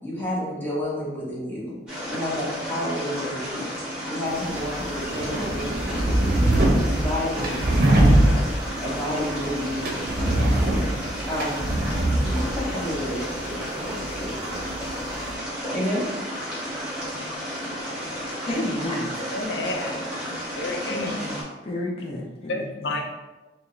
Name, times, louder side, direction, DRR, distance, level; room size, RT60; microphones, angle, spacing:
voice 1, 0.0-1.7 2.1-3.7 4.1-6.6 6.9-8.5 8.8-10.8 11.3-11.6 12.2-14.7 15.7-16.1 20.9-21.0, left 1 dB, 10° left, -6 dB, 1.0 m, -31 dB
sound 1, 1.9-21.4, equal, 5° right, 1.4 m, -32 dB
sound 2, 4.3-15.3, right 1 dB, 55° right, 0.6 m, -24 dB
voice 2, 18.5-19.2 20.9-23.0, left 1 dB, 35° left, -2 dB, 0.5 m, -31 dB
voice 3, 19.3-21.2 22.5-23.1, left 2 dB, 90° left, 2 dB, 0.6 m, -31 dB
4.5 x 2.1 x 3.1 m, 1.1 s
head